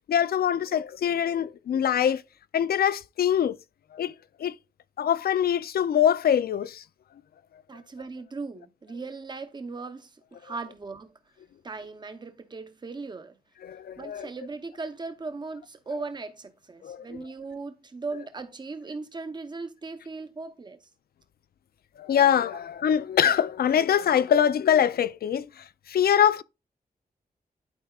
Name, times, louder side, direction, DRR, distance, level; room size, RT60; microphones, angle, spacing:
voice 1, 0.1-2.2 2.5-3.6 3.9-4.1 4.4-4.5 5.0-6.8 10.5-10.6 13.6-14.3 15.9-16.0 16.8-17.3 18.1-18.3 22.0-26.4, left 9 dB, 80° left, 0.4 m, -24 dB
voice 2, 7.7-11.1 11.6-13.4 14.0-20.9, right 4 dB, 30° right, 0.8 m, -38 dB
12.0 x 4.7 x 2.3 m
wide cardioid pair, 180°, 16 cm